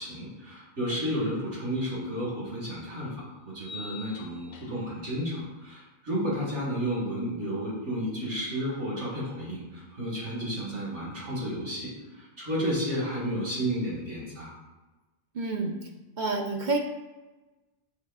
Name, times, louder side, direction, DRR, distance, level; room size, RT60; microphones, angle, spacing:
voice 1, 0.0-14.5, equal, 80° right, -6 dB, 1.9 m, -32 dB
sound 1, 3.6-5.0, left 4 dB, 85° left, 0.9 m, -45 dB
voice 2, 15.3-15.8 16.2-16.8, right 3 dB, 60° right, 2 dB, 0.5 m, -28 dB
6.4 x 3.1 x 2.3 m, 1.1 s
omnidirectional pair, 1.2 m